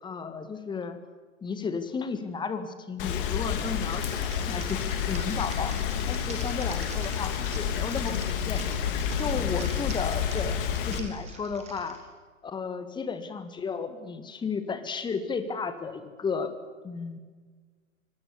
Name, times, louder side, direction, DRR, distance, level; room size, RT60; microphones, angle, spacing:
voice 1, 0.0-1.0 1.4-5.8 6.1-8.6 9.1-12.0 12.4-16.5 16.8-17.2, left 5 dB, 10° left, 10 dB, 1.8 m, -33 dB
Rain, 3.0-11.0, left 8 dB, 40° left, 2.9 m, -29 dB
Typing, 3.9-12.0, right 5 dB, 15° right, 4.2 m, -46 dB
25.0 x 19.0 x 7.2 m, 1.4 s
figure-of-eight pair, 110°, 39 cm